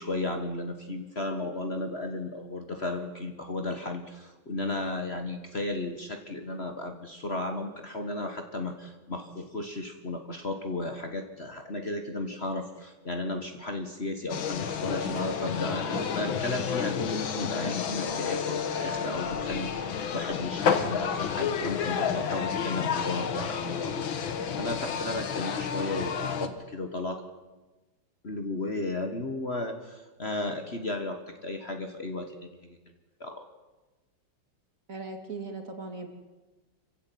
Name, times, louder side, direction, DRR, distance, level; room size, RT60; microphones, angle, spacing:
voice 1, 0.0-27.3 28.2-32.8 33.2-33.5, left 2 dB, 35° left, 6 dB, 1.6 m, -34 dB
sound 1, 14.3-26.5, left 6 dB, 85° left, 2.2 m, -30 dB
voice 2, 34.9-36.1, right 3 dB, 45° right, 5 dB, 2.7 m, -38 dB
26.0 x 15.5 x 9.3 m, 1.2 s
omnidirectional pair, 2.1 m